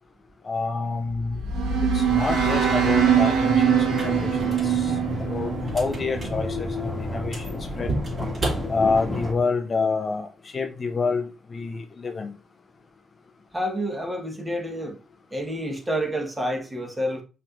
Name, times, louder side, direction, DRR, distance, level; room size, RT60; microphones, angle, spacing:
voice 1, 0.4-1.4 1.9-7.9 8.7-12.4, left 4 dB, 35° left, 0.5 m, -28 dB
sound 1, 1.0-6.3, right 8 dB, 80° right, 1.0 m, -23 dB
sound 2, 2.4-9.3, left 2 dB, 5° left, 1.8 m, -32 dB
sound 3, 3.8-9.3, right 2 dB, 35° right, 2.6 m, -35 dB
voice 2, 13.5-15.0 15.3-17.2, equal, 15° right, 1.3 m, -29 dB
5.8 x 3.1 x 2.5 m
cardioid pair, 90°, 0 cm